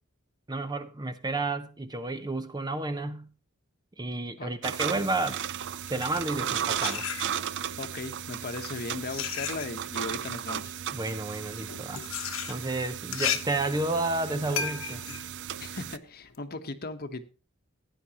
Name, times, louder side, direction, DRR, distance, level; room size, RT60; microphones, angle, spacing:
voice 1, 0.5-3.3 4.0-5.4 5.9-7.1 10.9-12.0 12.5-15.0, right 2 dB, 20° right, 0.7 m, -31 dB
sound 1, 4.6-16.0, right 9 dB, 60° right, 0.5 m, -35 dB
sound 2, 5.8-7.7 8.5-16.4, left 8 dB, 70° left, 1.1 m, -36 dB
voice 2, 7.8-10.7 15.6-17.2, left 3 dB, 45° left, 1.1 m, -37 dB
16.0 x 9.6 x 2.9 m
head